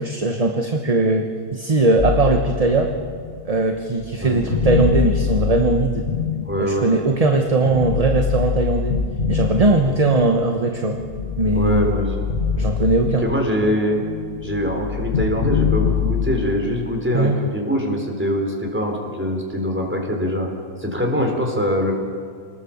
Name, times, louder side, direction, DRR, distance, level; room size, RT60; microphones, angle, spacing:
voice 1, 0.0-2.9 3.4-6.1 6.6-9.0 9.3-11.0 11.4-11.9 12.6-13.3 17.1-17.4, right 2 dB, 25° right, 4 dB, 1.1 m, -19 dB
sound 1, 2.0-7.1 7.6-10.3 10.8-13.6 13.9-16.6, left 6 dB, 40° left, 1.7 m, -24 dB
voice 2, 6.4-6.9 9.7-9.9 11.5-12.1 13.2-14.0 14.4-20.5 20.8-21.9, equal, 5° right, 0 dB, 3.8 m, -23 dB
27.0 x 20.0 x 7.3 m, 2.1 s
omnidirectional pair, 1.6 m